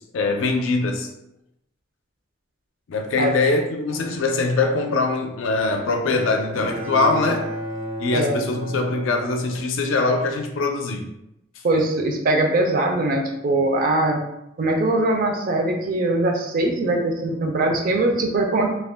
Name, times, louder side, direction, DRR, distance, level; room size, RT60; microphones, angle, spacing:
voice 1, 0.1-1.1 2.9-7.5 8.0-11.1, left 3 dB, 75° left, 0.4 m, -22 dB
Bowed string instrument, 6.1-10.3, right 1 dB, 90° right, 0.8 m, -33 dB
voice 2, 8.1-8.4 11.6-14.2 14.6-18.7, right 2 dB, 45° right, 0.4 m, -21 dB
2.3 x 2.1 x 3.3 m
head